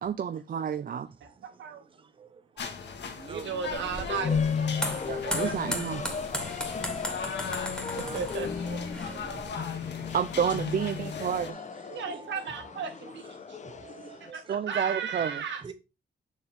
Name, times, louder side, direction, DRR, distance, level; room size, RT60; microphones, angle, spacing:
voice 1, 0.0-1.1 5.1-6.0 8.7-8.8 9.2-9.4 10.1-11.6 14.5-15.4, right 8 dB, 50° right, 0.6 m, -30 dB
voice 2, 1.4-1.8 3.3-4.5 5.4-5.5 6.0-6.1 8.0-8.5 11.9-13.6 14.3-15.6, right 6 dB, 85° right, 2.2 m, -35 dB
sound 1, 2.6-11.5, left 5 dB, 70° left, 1.8 m, -39 dB
voice 3, 3.2-3.5 3.8-4.2 5.3-5.8 8.0-8.2 10.4-10.6 11.5-11.6 12.1-12.7 13.7-14.6 15.6-15.7, right 5 dB, 30° right, 0.9 m, -45 dB
sound 2, 3.7-9.4, equal, 5° left, 2.4 m, -37 dB
sound 3, 4.1-14.3, left 6 dB, 40° left, 0.9 m, -35 dB
7.4 x 6.5 x 3.5 m
wide cardioid pair, 125°, 19 cm